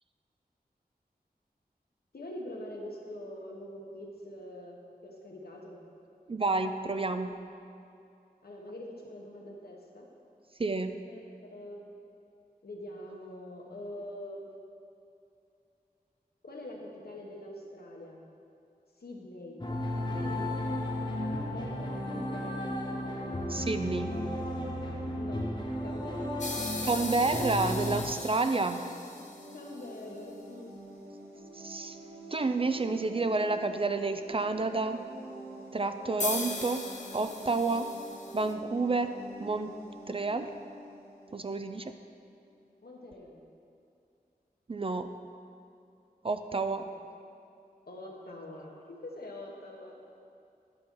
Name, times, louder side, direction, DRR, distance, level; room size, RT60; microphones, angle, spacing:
voice 1, 2.1-5.8 8.4-10.1 11.1-11.2 11.5-11.9 12.6-14.6 16.4-18.2 19.0-19.6 20.1-20.9 21.2-22.8 25.1-25.5 25.8-26.4 28.4-28.8 29.5-30.7 42.8-43.4 46.7-46.9 47.9-50.0, left 1 dB, 75° left, -1 dB, 1.1 m, -44 dB
voice 2, 6.3-7.3 10.6-11.0 23.5-24.2 26.8-28.8 31.6-32.0 32.3-35.0 35.7-36.8 37.1-37.9 38.3-39.1 39.4-39.7 40.1-40.5 41.3-41.9 44.7-45.1 46.2-46.8, right 3 dB, 35° right, 8 dB, 0.3 m, -29 dB
sound 1, 19.6-28.0, left 1 dB, 25° left, 1.1 m, -34 dB
sound 2, 26.4-29.9 36.2-38.5, left 2 dB, 50° left, 0.7 m, -38 dB
sound 3, 28.5-42.1, right 1 dB, 90° right, 1.2 m, -48 dB
9.8 x 5.8 x 3.7 m, 2.6 s
wide cardioid pair, 65°, 16 cm